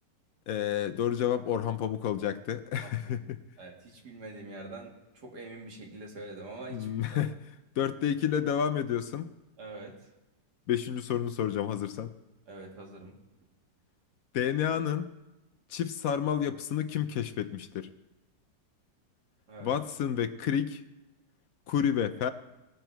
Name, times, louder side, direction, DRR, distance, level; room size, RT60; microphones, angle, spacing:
voice 1, 0.5-3.4 6.7-9.3 10.7-12.1 14.3-15.1 15.7-17.9 19.6-20.8 21.7-22.3, left 9 dB, 70° left, 9 dB, 0.8 m, -30 dB
voice 2, 2.8-3.2 3.6-7.2 9.6-9.9 12.5-13.1 19.5-19.7, right 2 dB, 65° right, 0 dB, 2.5 m, -45 dB
20.0 x 8.0 x 4.6 m, 1.0 s
omnidirectional pair, 1.9 m